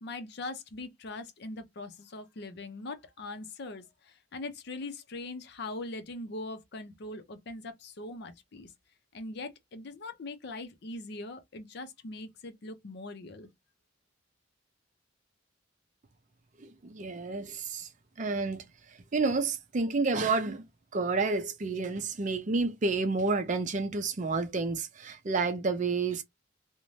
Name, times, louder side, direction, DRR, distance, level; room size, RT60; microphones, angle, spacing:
voice 1, 0.0-8.7 9.1-13.5, left 2 dB, 55° left, 0.5 m, -41 dB
voice 2, 16.6-17.9 18.2-20.6 20.9-26.2, right 3 dB, 40° right, 0.5 m, -30 dB
2.6 x 2.1 x 3.1 m
head